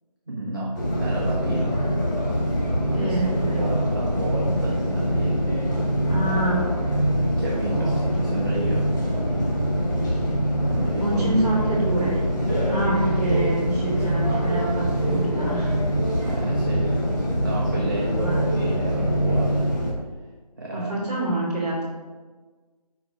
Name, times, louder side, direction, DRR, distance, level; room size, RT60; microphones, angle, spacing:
voice 1, 0.3-1.8 2.9-5.4 7.2-8.9 10.7-11.2 16.2-19.6 20.6-20.9, right 1 dB, 30° right, -4 dB, 0.7 m, -32 dB
sound 1, 0.7-19.9, equal, 30° left, 1.2 m, -24 dB
voice 2, 2.9-3.6 6.0-6.7 7.6-8.0 11.0-12.3 12.6-15.8 18.2-18.4 20.7-21.8, right 2 dB, 10° right, -12 dB, 1.8 m, -27 dB
5.0 x 4.5 x 4.9 m, 1.3 s
figure-of-eight pair, 160°, 21 cm